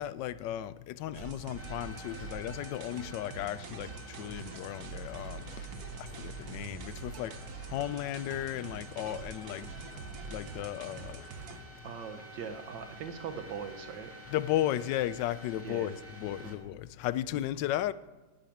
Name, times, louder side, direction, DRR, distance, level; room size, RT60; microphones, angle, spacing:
voice 1, 0.0-5.7 6.0-7.4 7.7-9.7 10.3-11.3 14.3-17.9, left 13 dB, 85° left, 1.2 m, -35 dB
sound 1, 1.1-11.6, right 5 dB, 60° right, 1.4 m, -44 dB
sound 2, 1.6-16.6, equal, 10° left, 1.8 m, -50 dB
voice 2, 11.8-14.1 15.6-16.0 16.3-16.6, right 6 dB, 85° right, 1.7 m, -41 dB
10.5 x 7.9 x 9.2 m
omnidirectional pair, 1.9 m